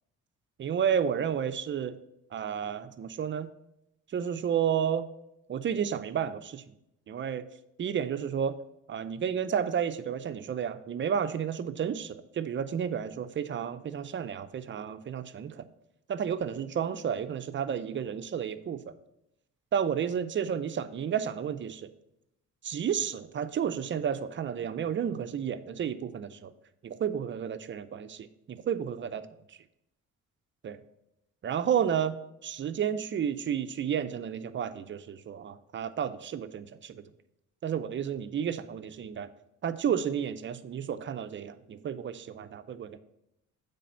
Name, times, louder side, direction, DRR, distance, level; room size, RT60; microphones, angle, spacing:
voice 1, 0.6-2.0 2.3-3.5 4.1-5.1 5.5-6.6 7.1-7.4 7.8-8.6 8.9-15.6 16.1-18.8 19.7-21.9 22.6-26.5 26.8-29.3 30.6-30.8 31.4-32.2 32.4-37.0 37.6-39.3 39.6-43.0, right 8 dB, 40° right, 12 dB, 0.5 m, -31 dB
8.2 x 3.4 x 5.6 m, 0.83 s
cardioid pair, 90°, 30 cm